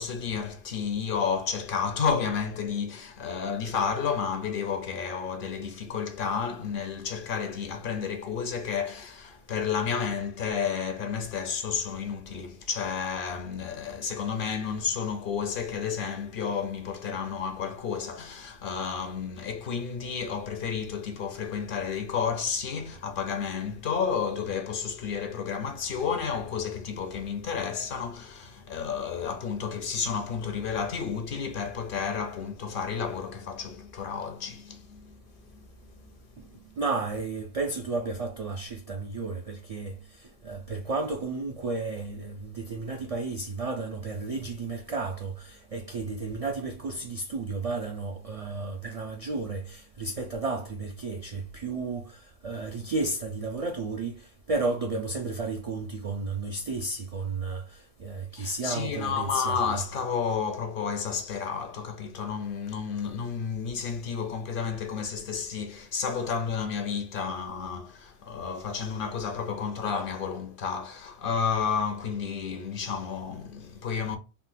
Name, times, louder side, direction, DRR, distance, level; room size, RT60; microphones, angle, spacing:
voice 1, 0.0-35.2 35.5-35.7 58.4-74.2, left 6 dB, 60° left, 0.7 m, -31 dB
voice 2, 36.8-59.8, right 3 dB, 60° right, 0.3 m, -33 dB
3.7 x 2.1 x 2.5 m
omnidirectional pair, 1.1 m